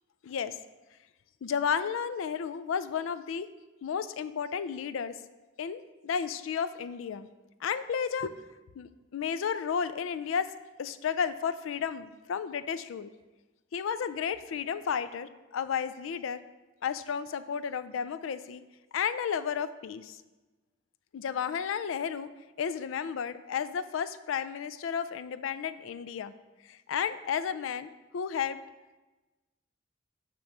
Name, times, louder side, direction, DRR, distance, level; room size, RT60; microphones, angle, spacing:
voice 1, 0.2-0.6 1.4-3.5 3.8-5.2 5.6-7.3 7.6-8.3 8.8-10.5 10.8-13.1 13.7-16.4 16.8-18.6 18.9-20.2 21.1-22.3 22.6-26.3 26.6-28.6, left 7 dB, 90° left, 13 dB, 0.4 m, -32 dB
9.0 x 3.0 x 5.3 m, 1.2 s
head